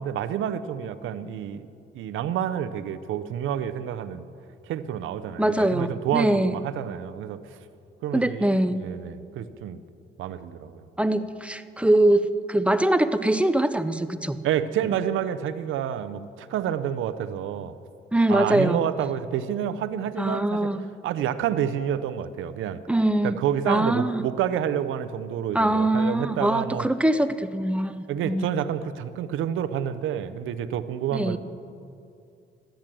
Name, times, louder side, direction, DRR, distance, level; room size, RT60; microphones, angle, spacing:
voice 1, 0.0-1.7 1.9-4.2 4.7-7.4 8.0-9.8 10.2-10.8 14.4-17.7 18.3-20.7 21.0-22.8 23.2-26.9 28.1-31.4, right 9 dB, 80° right, 12 dB, 0.7 m, -29 dB
voice 2, 5.4-6.6 8.1-8.8 11.0-14.4 18.1-18.9 20.2-20.8 22.9-23.4 23.7-24.2 25.5-28.5 31.1-31.4, right 1 dB, 5° right, 12 dB, 0.6 m, -23 dB
13.5 x 10.5 x 7.6 m, 2.5 s
cardioid pair, 90°, 20 cm